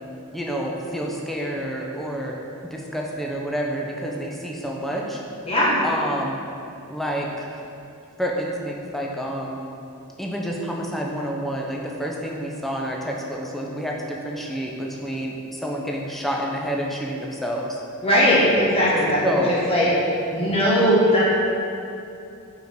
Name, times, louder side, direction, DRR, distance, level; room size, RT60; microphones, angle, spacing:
voice 1, 0.3-5.2 5.8-6.4 6.9-7.6 8.2-9.6 10.2-17.8 19.2-19.6, equal, ahead, -2 dB, 0.5 m, -28 dB
voice 2, 5.4-5.8 18.0-19.2 19.5-19.9 20.3-21.3, equal, 25° left, -7 dB, 1.1 m, -19 dB
4.9 x 4.7 x 5.1 m, 2.7 s
head